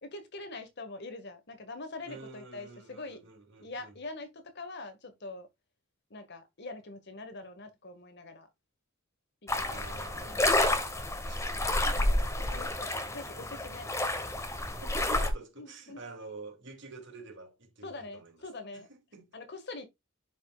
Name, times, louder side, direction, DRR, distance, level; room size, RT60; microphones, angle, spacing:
voice 1, 0.0-3.2 3.6-5.5 6.1-8.5 9.4-9.8 10.2-10.5 11.9-13.9 15.6-16.0 17.8-18.9 19.3-19.9, left 2 dB, 55° left, 1.8 m, -44 dB
voice 2, 2.0-4.0 9.6-10.7 11.2-11.9 14.6-18.4 18.7-19.3, right 3 dB, 60° right, 2.5 m, -48 dB
sound 1, 9.5-15.3, left 1 dB, 15° left, 1.2 m, -30 dB
11.0 x 5.3 x 2.4 m
head